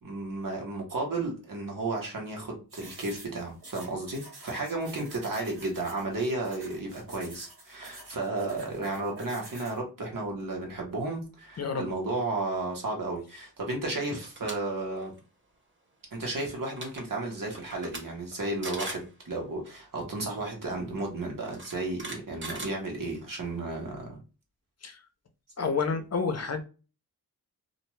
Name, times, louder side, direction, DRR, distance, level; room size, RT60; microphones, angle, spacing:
voice 1, 0.0-15.1 16.1-24.2, right 2 dB, 60° right, 1.0 m, -33 dB
sound 1, 2.7-9.8, right 2 dB, 75° right, 1.4 m, -49 dB
voice 2, 11.6-11.9 24.8-25.0 25.6-26.6, left 5 dB, 45° left, 0.6 m, -29 dB
sound 2, 14.2-14.5 15.0-15.2 16.4-16.5 16.7-17.0 17.5-18.0 18.3-18.4 18.6-19.1 20.3-20.4 21.4-23.3, right 2 dB, 30° right, 0.9 m, -39 dB
2.5 x 2.2 x 3.0 m
wide cardioid pair, 80°, 38 cm